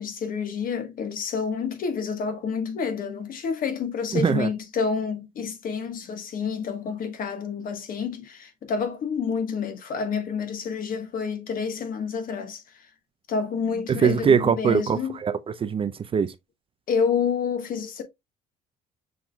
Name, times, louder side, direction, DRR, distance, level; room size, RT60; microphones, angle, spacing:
voice 1, 0.0-12.9 13.3-15.2 16.9-18.0, left 6 dB, 55° left, 1.2 m, -29 dB
voice 2, 4.1-4.5 13.9-16.3, right 6 dB, 35° right, 0.5 m, -22 dB
6.1 x 3.7 x 2.2 m
cardioid pair, 110°, 17 cm